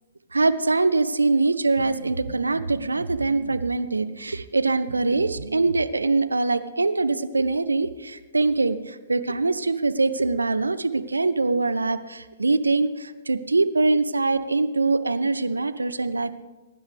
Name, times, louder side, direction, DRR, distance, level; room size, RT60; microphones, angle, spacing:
voice 1, 0.3-16.4, right 3 dB, 85° right, 11 dB, 0.8 m, -23 dB
22.0 x 10.0 x 3.5 m, 1.2 s
figure-of-eight pair, 120°, 0 cm